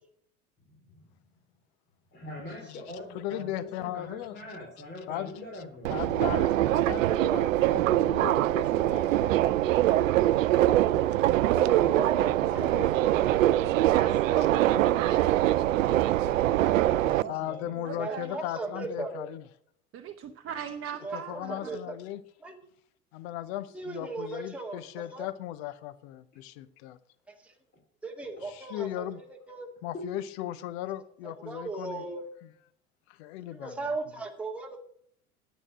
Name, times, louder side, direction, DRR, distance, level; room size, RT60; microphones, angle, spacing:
voice 1, 0.6-1.0 2.1-6.0 13.9-18.0 28.3-28.4 29.9-30.0, left 1 dB, 25° left, -1 dB, 3.2 m, -43 dB
voice 2, 2.7-4.4 5.1-11.1 11.7-12.9 15.1-15.2 17.0-19.4 21.1-22.2 23.1-27.0 28.4-29.2 29.8-32.0 33.1-33.7, left 13 dB, 45° left, 14 dB, 0.8 m, -38 dB
Subway metro underground, 5.8-17.2, right 14 dB, 65° right, 0.5 m, -23 dB
voice 3, 11.5-14.1 18.0-19.3 21.0-22.0 22.4-22.6 23.7-25.3 27.3-27.6 28.0-29.7 31.2-32.2 33.5-34.8, right 3 dB, 5° right, 1 dB, 1.9 m, -38 dB
voice 4, 17.7-18.4 19.9-21.7, right 8 dB, 30° right, 5 dB, 0.9 m, -39 dB
9.9 x 9.3 x 6.1 m, 0.65 s
figure-of-eight pair, 75°, 43 cm